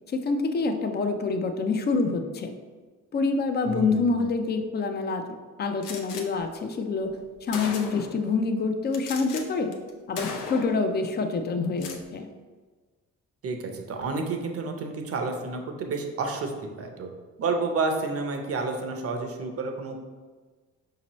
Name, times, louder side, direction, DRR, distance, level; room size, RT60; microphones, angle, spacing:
voice 1, 0.1-2.5 3.1-5.2 5.6-7.2 7.4-9.7 10.1-12.3, left 4 dB, 35° left, 6 dB, 0.5 m, -26 dB
voice 2, 3.6-4.3 13.4-16.5 16.8-17.1 17.4-20.0, right 3 dB, 50° right, 4 dB, 0.7 m, -30 dB
Gunshot gunfire, 5.8-6.2 7.1-7.2 7.5-8.2 8.9-9.4 9.7-9.9 10.2-10.8 11.6-12.0, left 5 dB, 85° left, 0.6 m, -36 dB
5.1 x 2.8 x 3.0 m, 1.4 s
cardioid pair, 90°, 30 cm